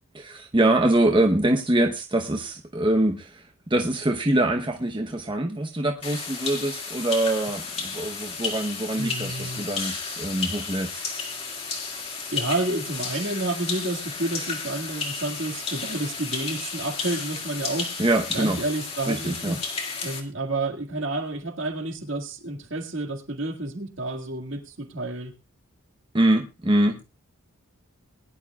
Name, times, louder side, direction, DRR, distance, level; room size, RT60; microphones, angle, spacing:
voice 1, 0.1-11.0 18.0-18.6 19.1-19.6 26.1-27.0, right 1 dB, 20° right, 0.9 m, -24 dB
sound 1, 6.0-20.2, left 4 dB, 25° left, 2.2 m, -33 dB
voice 2, 9.0-9.7 12.3-17.9 18.3-19.6 20.0-25.3, right 2 dB, 55° right, 2.0 m, -30 dB
21.5 x 11.0 x 2.4 m
head